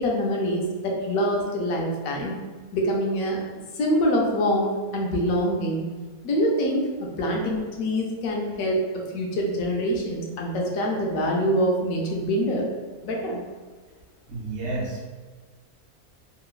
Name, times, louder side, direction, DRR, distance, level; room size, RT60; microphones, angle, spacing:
voice 1, 0.0-2.4 2.7-3.4 3.7-5.9 6.2-6.9 7.2-12.7 13.0-13.4, equal, 75° left, -1 dB, 1.1 m, -25 dB
voice 2, 14.3-15.1, right 2 dB, 65° right, -3 dB, 0.7 m, -30 dB
3.0 x 2.6 x 2.4 m, 1.4 s
omnidirectional pair, 1.5 m